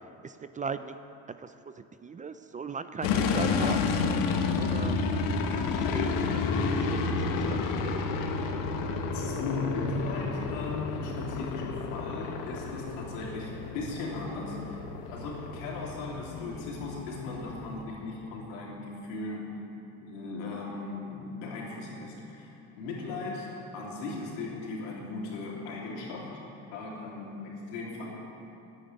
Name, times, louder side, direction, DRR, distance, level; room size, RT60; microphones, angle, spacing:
voice 1, 0.2-1.0 1.4-1.5 2.0-3.9 4.6-6.4 6.8-7.9, right 5 dB, 20° right, 11 dB, 0.5 m, -38 dB
sound 1, 3.0-17.8, left 4 dB, 65° left, 1.3 m, -31 dB
voice 2, 9.1-14.8 15.1-19.4 20.0-26.3 26.7-28.1, left 3 dB, 85° left, -4 dB, 3.4 m, -37 dB
10.0 x 8.7 x 9.2 m, 2.8 s
supercardioid pair, 85°, 36 cm